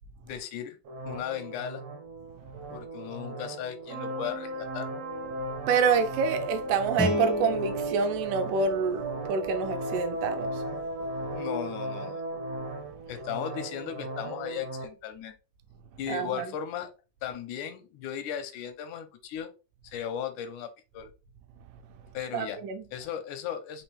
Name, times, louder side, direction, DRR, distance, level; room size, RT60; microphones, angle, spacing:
voice 1, 0.2-0.8 1.0-1.9 2.7-4.9 11.3-12.2 13.1-15.4 16.0-16.9 17.2-19.5 19.8-21.1 22.1-22.6 22.9-23.8, left 9 dB, 85° left, 2.1 m, -36 dB
sound 1, 0.9-14.8, right 2 dB, 70° right, 1.7 m, -36 dB
voice 2, 5.7-10.6 16.1-16.5 22.3-22.8, right 5 dB, 85° right, 2.2 m, -27 dB
Guitar, 6.9-9.7, left 2 dB, ahead, 0.3 m, -33 dB
5.3 x 3.0 x 3.2 m
omnidirectional pair, 3.6 m